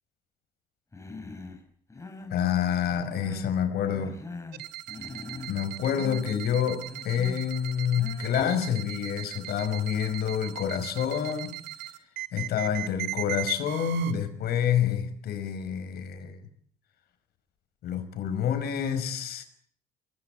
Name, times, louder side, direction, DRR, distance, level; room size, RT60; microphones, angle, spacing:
Human voice, 0.9-1.6 1.9-2.4 2.9-3.6 3.9-4.6 4.9-5.6 5.9-6.3 6.9-7.4 7.9-8.4, left 3 dB, 15° left, 5.3 m, -42 dB
voice 1, 2.3-4.2 5.5-11.6 12.3-16.4 17.8-19.4, left 8 dB, 70° left, 5.2 m, -28 dB
sound 1, 4.5-14.1, right 15 dB, 90° right, 2.3 m, -39 dB
25.5 x 19.5 x 9.1 m
cardioid pair, 110°, 17 cm